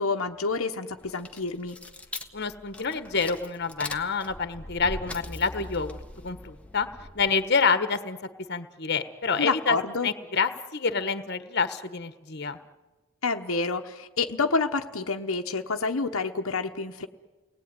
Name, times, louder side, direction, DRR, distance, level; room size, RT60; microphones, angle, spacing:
voice 1, 0.0-1.8 9.4-10.1 13.2-17.1, left 4 dB, 75° left, 5 dB, 1.1 m, -28 dB
sound 1, 1.0-7.6, left 1 dB, 5° left, 1.4 m, -41 dB
voice 2, 2.3-6.0 6.2-6.9 7.1-8.2 8.5-9.8 10.0-12.6, left 5 dB, 50° left, 11 dB, 1.4 m, -27 dB
30.0 x 19.5 x 9.7 m, 1.2 s
head